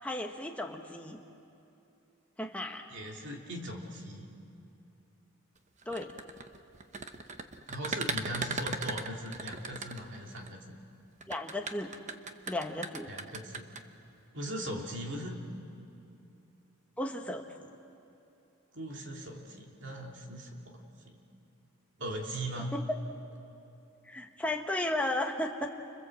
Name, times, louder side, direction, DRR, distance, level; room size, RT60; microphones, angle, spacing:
voice 1, 0.0-1.2 2.4-2.9 5.8-6.1 11.3-12.0 12.5-13.1 17.0-17.7 22.7-23.0 24.1-25.7, left 1 dB, 5° left, 2 dB, 1.4 m, -34 dB
voice 2, 2.9-4.3 7.7-10.8 13.1-13.7 14.3-15.4 18.7-21.2 22.0-22.7, right 1 dB, 55° right, 0 dB, 2.9 m, -39 dB
sound 1, 5.8-10.5 11.2-13.8, right 4 dB, 35° right, 1.0 m, -37 dB
29.0 x 26.0 x 7.8 m, 2.8 s
head